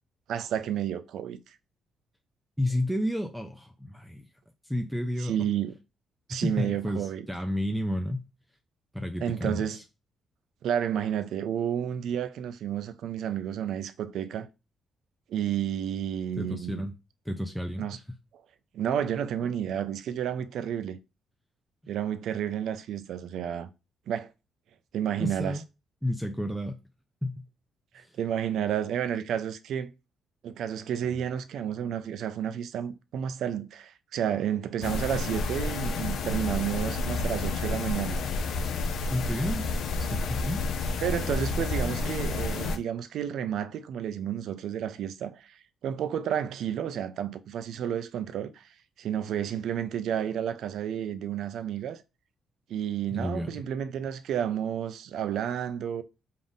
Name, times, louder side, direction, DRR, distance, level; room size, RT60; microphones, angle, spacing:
voice 1, 0.3-1.6 5.2-5.7 6.3-7.3 9.2-9.8 10.6-14.5 15.3-16.8 17.8-18.0 18.7-21.0 21.9-23.7 24.1-24.3 24.9-25.6 27.9-29.9 30.4-38.2 41.0-48.7 49.0-52.0 52.7-56.0, right 9 dB, 75° right, 0.4 m, -31 dB
voice 2, 2.6-4.2 4.6-5.4 6.3-8.3 8.9-9.8 16.4-16.9 17.3-18.0 25.2-25.6 26.0-26.8 27.2-27.4 28.0-28.1 39.1-40.6 53.1-53.6, left 1 dB, ahead, 0.4 m, -31 dB
sound 1, 34.8-42.8, left 3 dB, 75° left, 0.4 m, -30 dB
3.6 x 2.5 x 3.9 m
cardioid pair, 90°, 0 cm